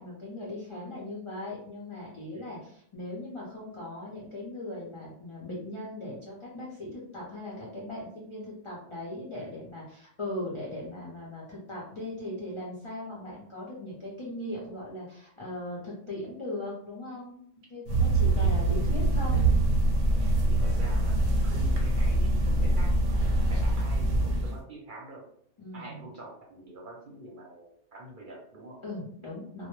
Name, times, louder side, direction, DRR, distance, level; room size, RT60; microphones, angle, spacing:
voice 1, 0.0-17.4 17.7-19.5 25.6-26.1 28.8-29.7, left 1 dB, 45° left, -5 dB, 0.4 m, -39 dB
voice 2, 2.3-2.6 9.3-9.5 18.3-18.7 20.5-25.2 25.7-28.8, right 1 dB, 55° right, -2 dB, 0.7 m, -46 dB
sound 1, 17.9-24.6, right 2 dB, 90° right, 1.0 m, -24 dB
2.1 x 2.0 x 2.9 m, 0.66 s
omnidirectional pair, 1.2 m